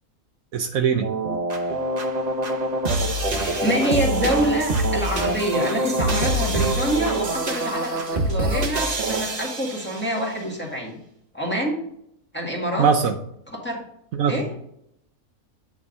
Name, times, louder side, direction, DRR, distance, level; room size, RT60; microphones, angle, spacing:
voice 1, 0.5-1.1 12.8-13.1 14.1-14.4, right 6 dB, 70° right, 6 dB, 1.0 m, -21 dB
sound 1, 1.0-10.2, right 1 dB, 35° right, 0.9 m, -25 dB
voice 2, 3.3-11.0 11.3-11.8 12.3-12.9 13.5-13.8 14.3-14.5, equal, 5° left, -3 dB, 1.7 m, -26 dB
9.1 x 3.5 x 5.3 m, 0.74 s
omnidirectional pair, 1.6 m